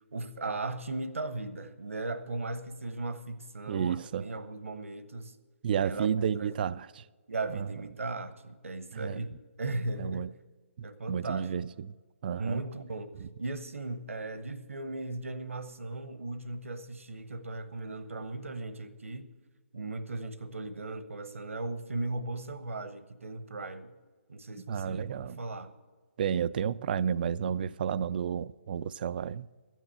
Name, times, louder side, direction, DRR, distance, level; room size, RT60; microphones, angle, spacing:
voice 1, 0.1-5.4 5.8-6.1 6.3-6.7 7.3-9.3 9.6-10.3 10.8-11.5 12.4-19.3 19.7-24.0 24.3-25.7, right 2 dB, 70° right, 1.0 m, -37 dB
voice 2, 3.7-4.3 5.6-7.0 7.5-7.7 8.9-9.2 10.0-10.3 11.1-11.9 12.2-12.6 13.2-13.3 24.7-25.4 26.2-29.5, right 8 dB, 40° right, 0.4 m, -31 dB
13.5 x 9.2 x 7.8 m
figure-of-eight pair, 135°, 7 cm